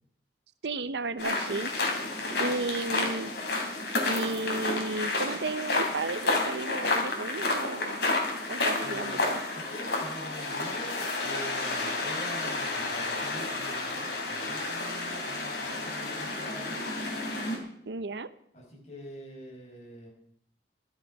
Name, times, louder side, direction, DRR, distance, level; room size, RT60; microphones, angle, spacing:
voice 1, 0.6-1.7 2.4-3.3 4.0-8.1 8.5-9.4 17.9-18.3, right 3 dB, 80° right, 14 dB, 0.7 m, -33 dB
sound 1, 1.2-17.6, left 2 dB, 70° left, 3.2 m, -31 dB
voice 2, 8.8-9.2 9.5-16.9 18.5-20.1, right 1 dB, 40° left, -2 dB, 5.5 m, -45 dB
13.0 x 12.5 x 5.3 m, 0.68 s
head